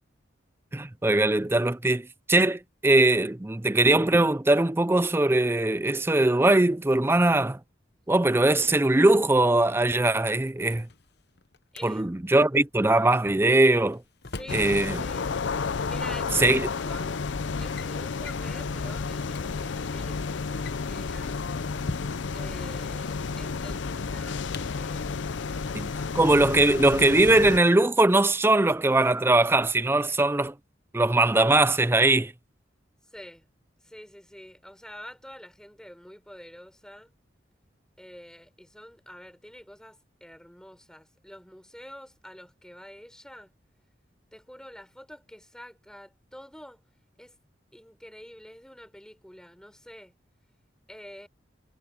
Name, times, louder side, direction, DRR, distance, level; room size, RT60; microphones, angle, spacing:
voice 1, 0.7-7.6 8.1-10.9 11.8-14.0 14.5-15.0 16.4-16.7 25.7-30.5 30.9-32.3, right 2 dB, 15° right, 0.5 m, -21 dB
Drawer open or close, 10.5-11.8 13.5-14.7 16.0-16.1 16.9-17.1 17.5-17.9 18.2-18.5 19.0-19.1 19.3-19.4 20.4-22.4 23.6-24.9, left 3 dB, 60° left, 1.0 m, -42 dB
voice 2, 11.7-12.1 14.3-15.3 15.8-17.2 17.6-21.4 22.3-25.1 25.4-26.5 33.1-33.5 33.8-37.1 38.0-43.5 44.3-46.8 47.2-47.4 47.7-50.1 50.9-51.3, equal, 5° left, 3.9 m, -47 dB
sound 1, 14.5-27.6, left 4 dB, 80° left, 0.6 m, -31 dB
head